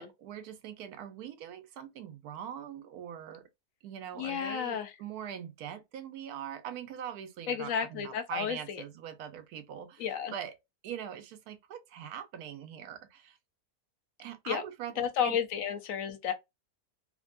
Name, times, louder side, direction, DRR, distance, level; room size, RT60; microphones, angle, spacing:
voice 1, 0.0-3.5 3.8-10.5 10.8-13.4 14.2-15.4, right 9 dB, 85° right, 1.1 m, -42 dB
voice 2, 4.2-4.9 7.5-8.8 10.0-10.3 14.5-14.6 15.0-16.3, left 8 dB, 70° left, 0.9 m, -32 dB
3.3 x 2.2 x 2.4 m
omnidirectional pair, 1.6 m